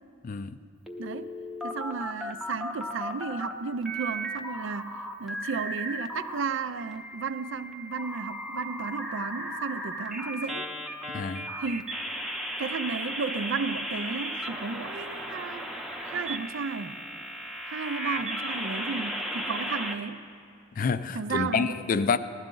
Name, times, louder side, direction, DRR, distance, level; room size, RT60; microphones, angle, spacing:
voice 1, 0.2-0.6 11.1-11.5 20.7-22.2, left 5 dB, 40° left, 0.4 m, -28 dB
sound 1, 0.9-3.5 3.8-6.4 6.8-19.9, equal, ahead, 0.7 m, -35 dB
voice 2, 1.0-1.3 1.6-10.7 11.6-12.0 12.6-15.7 16.0-17.0 17.7-20.3 21.1-21.8, right 5 dB, 65° right, 0.5 m, -33 dB
15.5 x 12.0 x 3.8 m
head